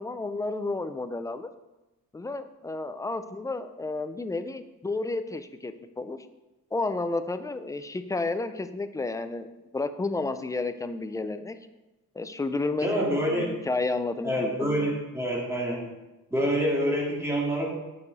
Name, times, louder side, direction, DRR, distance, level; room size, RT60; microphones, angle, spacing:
voice 1, 0.0-1.5 2.1-6.2 6.7-9.5 9.7-11.6 12.2-14.9, left 3 dB, 10° left, 10 dB, 0.3 m, -31 dB
voice 2, 12.8-13.5 14.2-15.9 16.3-17.7, equal, 5° right, -3 dB, 2.1 m, -27 dB
8.6 x 6.6 x 4.0 m, 1.1 s
cardioid pair, 135°, 35 cm